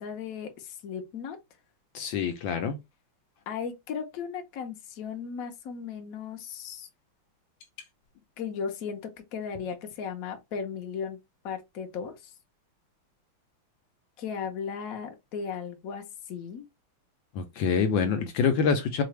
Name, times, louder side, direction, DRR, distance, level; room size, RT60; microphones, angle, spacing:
voice 1, 0.0-1.4 3.5-6.9 8.4-11.2 11.4-12.3 14.2-16.6, left 6 dB, 55° left, 1.1 m, -36 dB
voice 2, 1.9-2.8 17.3-19.0, left 6 dB, 70° left, 1.4 m, -26 dB
4.7 x 2.5 x 3.2 m
omnidirectional pair, 2.3 m